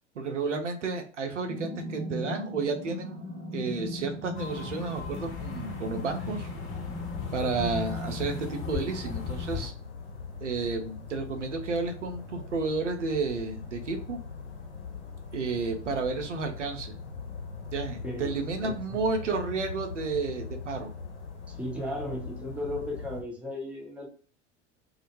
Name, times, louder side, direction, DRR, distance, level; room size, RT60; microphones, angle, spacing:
voice 1, 0.2-3.3 3.5-6.5 7.3-9.7 10.4-14.2 15.3-16.9 17.7-20.9, right 4 dB, 80° right, 4 dB, 0.6 m, -31 dB
sound 1, 1.5-9.5, left 1 dB, 35° right, 0.9 m, -39 dB
sound 2, 4.3-9.7, left 8 dB, 40° left, 0.7 m, -38 dB
sound 3, 5.4-23.2, left 5 dB, 70° left, 0.8 m, -41 dB
voice 2, 18.0-18.3 18.6-19.0 21.5-24.1, left 1 dB, 5° right, -1 dB, 0.6 m, -35 dB
2.1 x 2.0 x 3.0 m, 0.41 s
figure-of-eight pair, 80°, 36 cm